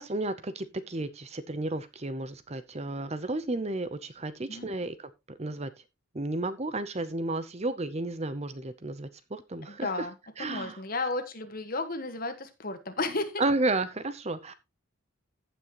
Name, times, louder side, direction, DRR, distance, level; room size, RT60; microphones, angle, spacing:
voice 1, 0.0-5.7 6.1-10.1 10.4-10.8 13.4-14.5, right 2 dB, 30° right, 13 dB, 0.7 m, -32 dB
voice 2, 9.7-13.4, left 3 dB, 40° left, 8 dB, 1.4 m, -33 dB
15.0 x 6.2 x 3.0 m, 0.24 s
head